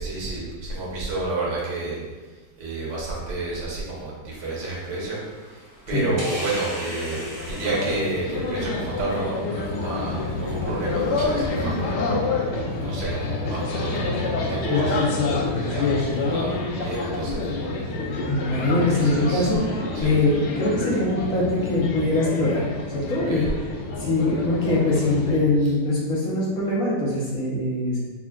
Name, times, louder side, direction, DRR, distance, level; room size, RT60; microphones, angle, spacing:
voice 1, 0.0-2.0 2.6-12.2 12.8-17.4 19.0-19.5 19.9-20.1 23.1-23.4, right 2 dB, 80° right, -5 dB, 1.6 m, -31 dB
sound 1, 4.4-11.2, equal, 55° right, 2.1 m, -40 dB
sound 2, 6.7-25.4, left 3 dB, 90° left, 1.2 m, -27 dB
voice 2, 18.3-22.6 22.9-23.7 24.0-28.0, left 2 dB, 60° left, -6 dB, 1.2 m, -23 dB
5.8 x 2.4 x 2.2 m, 1.3 s
omnidirectional pair, 1.8 m